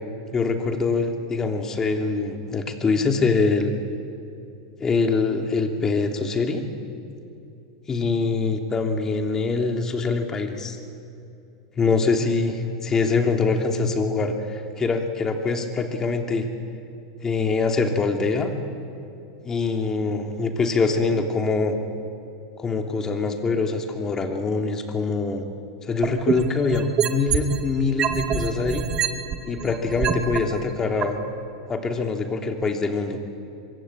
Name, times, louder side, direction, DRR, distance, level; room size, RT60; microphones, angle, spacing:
voice 1, 0.3-3.7 4.8-6.6 7.9-10.8 11.8-16.5 17.2-18.5 19.4-21.8 22.6-25.4 25.8-28.9 29.5-31.2 31.7-33.2, left 4 dB, 20° left, 4 dB, 3.1 m, -24 dB
sound 1, 26.0-27.6 28.0-30.4 31.0-31.1, right 9 dB, 30° right, 1.8 m, -24 dB
25.0 x 21.5 x 8.9 m, 2.8 s
hypercardioid pair, 120°, 2 cm